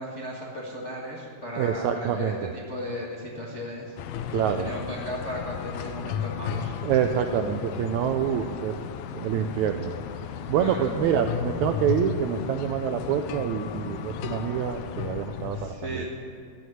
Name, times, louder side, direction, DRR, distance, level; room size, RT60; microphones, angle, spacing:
voice 1, 0.0-6.7 10.6-10.9 15.5-16.1, equal, 55° left, -4 dB, 0.7 m, -36 dB
voice 2, 1.6-2.4 4.3-4.7 6.8-8.7 9.1-9.9 10.5-16.0, right 8 dB, 90° right, 6 dB, 1.6 m, -26 dB
sound 1, 4.0-15.7, left 9 dB, 85° left, 1.6 m, -34 dB
14.0 x 6.2 x 10.0 m, 2.4 s
omnidirectional pair, 3.9 m